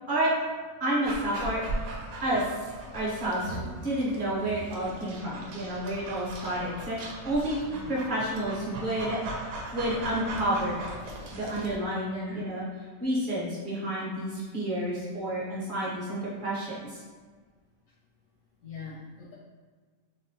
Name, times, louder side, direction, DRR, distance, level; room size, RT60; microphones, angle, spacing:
voice 1, 0.8-1.6 2.2-2.5 2.9-9.2 9.7-10.8 11.3-12.6 13.0-17.0, right 1 dB, 45° right, -6 dB, 0.8 m, -30 dB
Dog, 1.0-11.8, right 2 dB, 80° right, 1.0 m, -39 dB
voice 2, 7.6-8.0 12.0-12.4 18.6-19.3, left 4 dB, 80° left, -5 dB, 1.0 m, -42 dB
3.5 x 2.0 x 2.6 m, 1.5 s
omnidirectional pair, 1.5 m